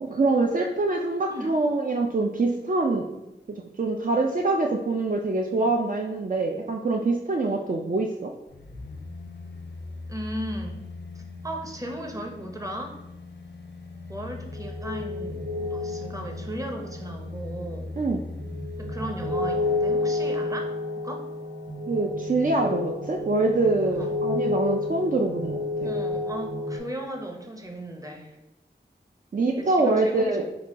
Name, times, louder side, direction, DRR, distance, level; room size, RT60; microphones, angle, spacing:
voice 1, 0.0-3.1 3.5-8.3 18.0-18.2 21.9-25.9 29.3-30.4, right 2 dB, 45° right, 1 dB, 0.4 m, -25 dB
sound 1, 8.5-20.1 20.4-20.5, left 3 dB, 70° left, 0.6 m, -40 dB
voice 2, 10.1-10.8 11.1-13.0 14.1-17.9 18.8-20.8 21.0-21.3 24.0-24.1 25.8-28.3 29.6-30.4, right 1 dB, 20° right, 2 dB, 0.7 m, -36 dB
sound 2, 14.5-26.8, left 2 dB, 70° right, 1.0 m, -31 dB
4.1 x 2.2 x 4.6 m, 0.96 s
wide cardioid pair, 50°, 19 cm